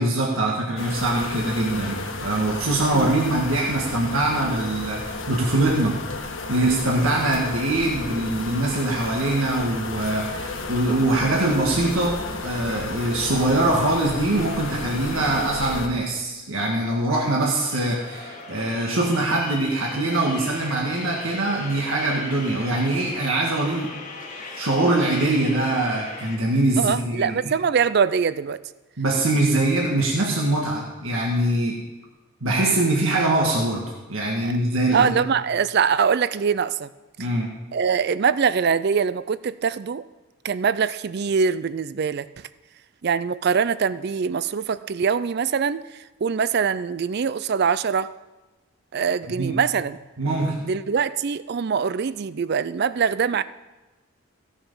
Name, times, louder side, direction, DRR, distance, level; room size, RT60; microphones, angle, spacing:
voice 1, 0.0-6.0 6.5-23.9 24.3-27.5 29.0-31.8 32.4-35.1 37.2-37.5 49.3-49.6 50.2-50.7, right 2 dB, 75° right, -1 dB, 1.7 m, -23 dB
sound 1, 0.8-15.9, left 3 dB, 60° left, 1.3 m, -33 dB
sound 2, 17.4-26.4, left 3 dB, 40° left, 1.5 m, -39 dB
voice 2, 26.8-28.6 34.4-34.5 34.9-36.9 37.7-40.1 40.4-42.3 43.0-48.1 48.9-50.0 50.6-53.4, right 6 dB, 50° right, 16 dB, 0.4 m, -23 dB
15.5 x 7.2 x 5.4 m, 1.2 s
head